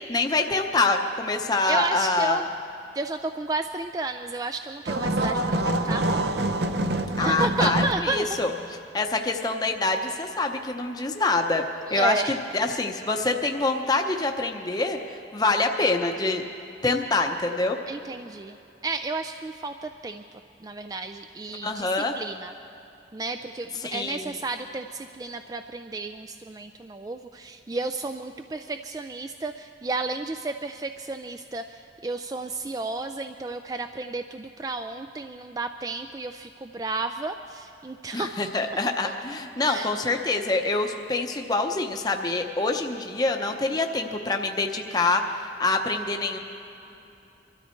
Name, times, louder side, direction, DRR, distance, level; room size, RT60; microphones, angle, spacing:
voice 1, 0.1-2.4 7.2-8.5 8.9-11.6 11.9-16.4 16.8-17.8 21.6-22.1 23.8-24.4 38.1-46.4, left 3 dB, 20° left, 3 dB, 0.7 m, -25 dB
voice 2, 1.7-2.5 2.9-6.2 7.2-8.3 11.9-12.4 17.9-18.6 18.8-20.2 20.6-22.5 23.1-38.4 39.0-39.1 39.6-39.9, right 3 dB, 20° right, 7 dB, 0.3 m, -32 dB
sound 1, 4.9-7.9, right 1 dB, 70° right, 0.7 m, -25 dB
24.0 x 13.0 x 4.5 m, 2.9 s
head